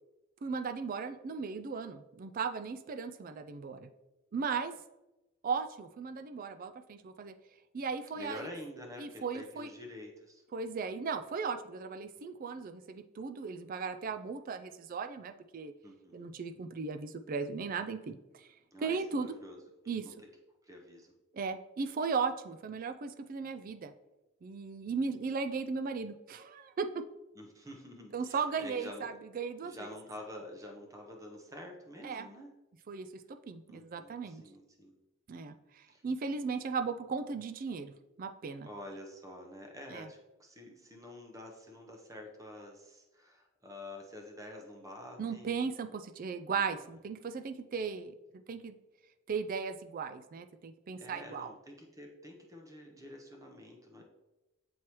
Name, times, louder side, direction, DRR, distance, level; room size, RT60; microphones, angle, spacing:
voice 1, 0.4-3.9 4.3-4.7 5.4-7.3 7.7-8.5 9.0-9.7 10.5-15.7 16.1-19.3 19.9-20.0 21.3-23.9 24.4-27.0 28.1-29.8 32.0-32.3 32.9-34.4 35.3-37.9 38.2-38.7 39.9-40.1 45.2-48.1 48.5-48.8 49.3-51.5, right 5 dB, 40° right, 10 dB, 0.3 m, -37 dB
voice 2, 8.2-10.4 15.8-16.3 18.7-19.6 19.8-20.2 20.6-21.1 27.3-29.1 29.6-32.5 33.7-35.0 35.9-36.0 38.6-45.5 51.0-54.0, left 1 dB, 15° right, 1 dB, 0.8 m, -48 dB
7.1 x 4.6 x 3.0 m, 1.0 s
head